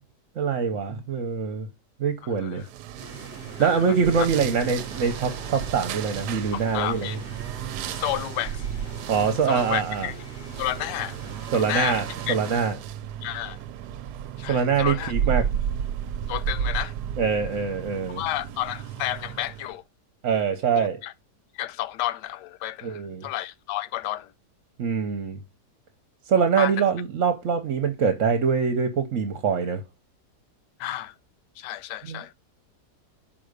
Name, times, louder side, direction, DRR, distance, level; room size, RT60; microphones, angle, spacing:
voice 1, 0.4-1.7 2.0-2.6 3.6-7.2 9.1-10.1 11.5-12.7 14.5-15.4 17.2-18.2 20.2-21.0 22.8-23.3 24.8-25.4 26.3-29.8 32.0-32.3, right 6 dB, 55° right, 1.1 m, -24 dB
voice 2, 2.2-2.7 3.6-3.8 4.2-4.3 6.5-7.2 7.9-8.6 9.5-10.1 10.6-11.2 11.5-12.4 13.2-13.6 14.4-15.1 16.3-16.9 18.1-19.8 20.8-21.1 21.5-24.3 26.6-26.8 30.8-31.1 31.6-32.3, left 13 dB, 85° left, 1.2 m, -31 dB
sound 1, 2.6-19.8, right 9 dB, 80° right, 1.2 m, -33 dB
sound 2, 3.0-12.7, left 2 dB, 65° left, 3.1 m, -45 dB
5.8 x 5.0 x 6.5 m
omnidirectional pair, 1.8 m